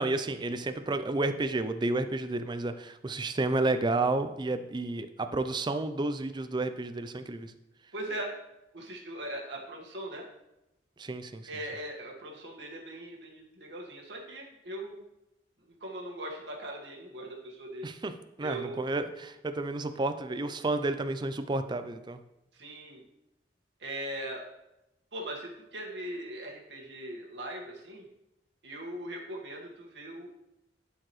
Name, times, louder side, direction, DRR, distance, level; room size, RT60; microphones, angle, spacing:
voice 1, 0.0-7.5 11.0-11.5 17.8-18.1 18.4-22.2, right 2 dB, 25° right, 9 dB, 0.4 m, -31 dB
voice 2, 7.9-8.3 8.7-10.2 11.5-15.0 15.8-17.9 18.4-18.8 22.5-23.0 23.8-24.4 25.1-28.0 28.6-30.3, right 1 dB, 75° right, -1 dB, 1.6 m, -40 dB
11.5 x 4.7 x 3.1 m, 0.92 s
head